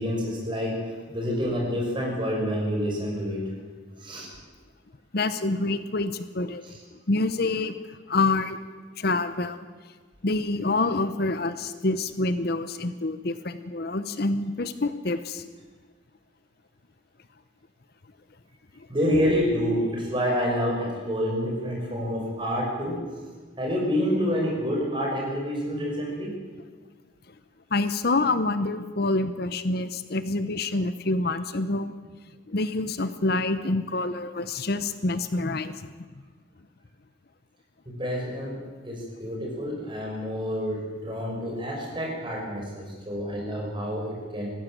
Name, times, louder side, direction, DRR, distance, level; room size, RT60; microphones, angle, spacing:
voice 1, 0.0-3.4 4.0-4.3 6.6-6.8 18.9-23.0 23.6-26.4 37.8-38.6 38.8-44.5, equal, 25° right, -1 dB, 6.3 m, -28 dB
voice 2, 5.1-6.6 7.1-7.8 8.1-8.6 9.0-9.7 10.2-15.5 27.7-31.9 32.5-35.9, left 2 dB, 55° left, 12 dB, 0.9 m, -27 dB
20.0 x 15.5 x 9.0 m, 1.4 s
head